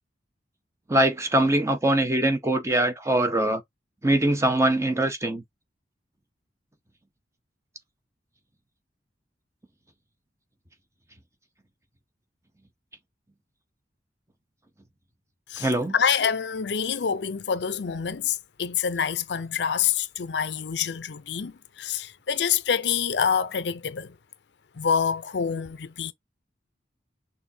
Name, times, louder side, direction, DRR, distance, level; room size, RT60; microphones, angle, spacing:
voice 1, 0.9-3.6 4.0-5.4 15.6-15.9, right 1 dB, 15° right, 0.8 m, -22 dB
voice 2, 15.5-24.2 24.8-26.1, left 7 dB, 75° left, 0.5 m, -26 dB
6.3 x 2.7 x 2.7 m
head